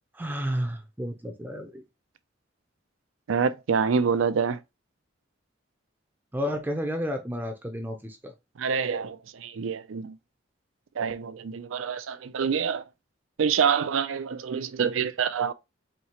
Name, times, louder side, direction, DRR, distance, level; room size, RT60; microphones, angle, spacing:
voice 1, 0.1-1.8 6.3-8.3, equal, 10° right, 0.5 m, -31 dB
voice 2, 3.3-4.6 8.6-10.2 11.0-12.8 13.4-15.5, right 6 dB, 90° right, 0.5 m, -26 dB
4.5 x 2.8 x 2.9 m
head